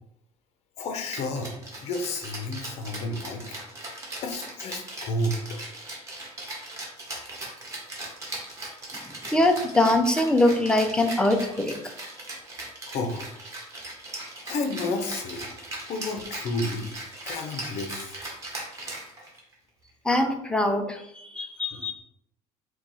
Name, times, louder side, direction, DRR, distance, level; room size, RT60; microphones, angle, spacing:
voice 1, 0.8-3.5 4.2-5.6 12.8-13.3 14.4-15.5 15.8-16.9 17.2-18.2 21.7-21.9, left 2 dB, 55° left, 5 dB, 0.8 m, -31 dB
Rattle (instrument), 1.1-19.5, right 2 dB, 25° right, 1.2 m, -39 dB
voice 2, 9.3-11.8 20.0-21.9, left 1 dB, 5° left, 4 dB, 0.5 m, -23 dB
4.5 x 2.3 x 4.0 m, 0.77 s
cardioid pair, 145°, 13 cm